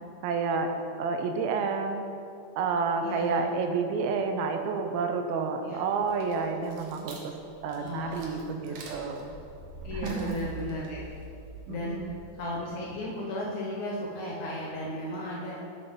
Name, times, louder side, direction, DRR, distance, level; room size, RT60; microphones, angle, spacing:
voice 1, 0.2-0.7 1.0-2.0 2.6-7.3 7.6-9.3 9.9-10.5 11.7-12.1, right 5 dB, 90° right, 5 dB, 2.5 m, -30 dB
voice 2, 3.0-3.5 5.6-5.8 7.7-8.3 8.7-8.9 9.8-11.0 11.7-12.0 12.4-15.6, left 1 dB, 75° left, -3 dB, 1.9 m, -35 dB
sound 1, 6.0-12.5, right 3 dB, 70° right, 2.0 m, -44 dB
7.9 x 7.7 x 3.5 m, 2.6 s
omnidirectional pair, 4.3 m